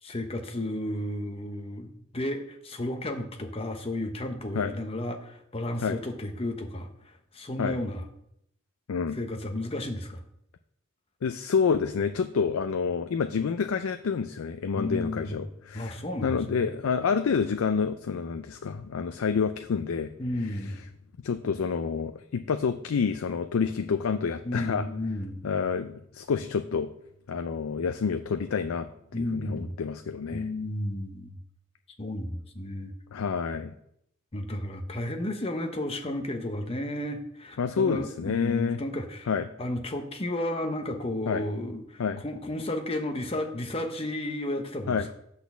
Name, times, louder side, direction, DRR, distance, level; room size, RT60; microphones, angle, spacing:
voice 1, 0.0-8.0 9.1-10.2 14.8-16.7 20.2-20.8 24.4-25.4 29.1-29.7 30.3-31.4 32.0-32.9 34.3-39.3 39.6-45.1, left 1 dB, 30° left, 6 dB, 0.8 m, -33 dB
voice 2, 11.2-20.1 21.2-24.9 25.4-26.9 27.3-30.4 33.1-33.7 37.6-38.8 39.3-39.5 41.3-41.4 42.0-42.2 44.9-45.1, left 6 dB, 90° left, 8 dB, 0.4 m, -28 dB
8.3 x 4.1 x 6.8 m, 0.76 s
head